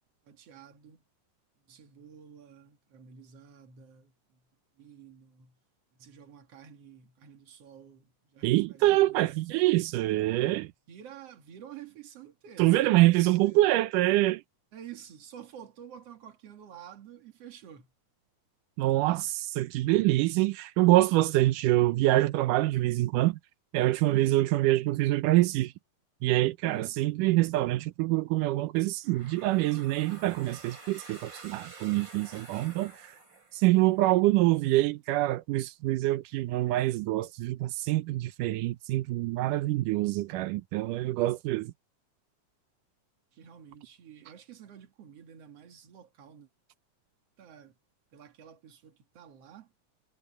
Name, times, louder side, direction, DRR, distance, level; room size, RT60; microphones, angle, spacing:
voice 1, 0.2-1.0 1.7-4.5 4.8-5.6 5.9-9.4 10.9-13.7 14.7-17.9 24.1-24.4 26.6-27.0 43.3-46.5 47.4-47.7 48.1-49.7, right 9 dB, 55° right, 2.9 m, -50 dB
voice 2, 8.4-10.7 12.6-14.4 18.8-23.4 23.7-25.7 26.2-33.1 33.5-41.7, right 17 dB, 90° right, 2.3 m, -25 dB
sound 1, 29.0-34.0, right 4 dB, 35° right, 6.6 m, -49 dB
omnidirectional pair, 3.7 m